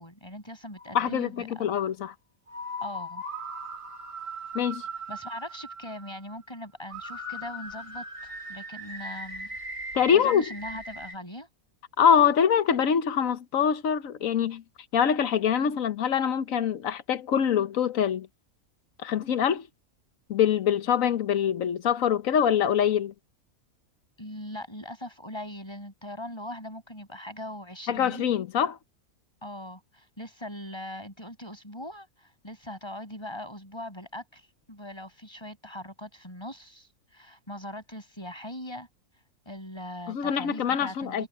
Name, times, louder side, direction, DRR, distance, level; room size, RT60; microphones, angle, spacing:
voice 1, 0.0-1.7 2.8-3.2 5.1-9.6 10.1-11.5 24.2-28.3 29.4-38.9 39.4-41.3, left 1 dB, 15° left, 6.7 m, -40 dB
sound 1, 0.8-1.5 2.5-6.5 6.9-11.1, right 1 dB, 65° right, 6.0 m, -39 dB
voice 2, 0.9-2.1 4.5-4.8 9.9-10.4 12.0-14.6 14.9-18.3 19.0-19.7 20.3-23.1 27.9-28.8 40.1-41.3, left 8 dB, 70° left, 1.4 m, -24 dB
omnidirectional pair, 1.5 m